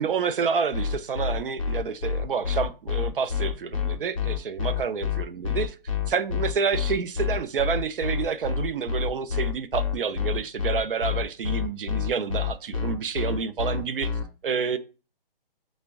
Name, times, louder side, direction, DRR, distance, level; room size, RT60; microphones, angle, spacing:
voice 1, 0.0-5.8 6.1-14.1 14.4-14.8, right 6 dB, 65° right, 0.5 m, -28 dB
sound 1, 0.7-14.2, left 7 dB, 35° left, 0.5 m, -27 dB
5.9 x 2.1 x 3.4 m
hypercardioid pair, 170°, 29 cm